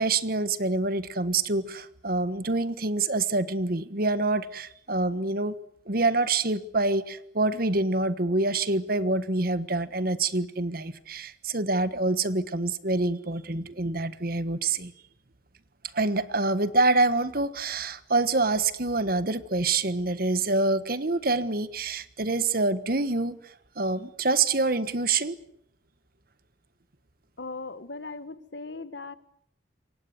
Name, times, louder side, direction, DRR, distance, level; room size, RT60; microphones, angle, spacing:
voice 1, 0.0-5.5 5.9-14.9 15.9-25.4, right 3 dB, 50° right, 14 dB, 1.4 m, -26 dB
voice 2, 27.4-29.2, left 3 dB, 65° left, 13 dB, 1.6 m, -38 dB
27.5 x 24.5 x 8.1 m, 0.68 s
head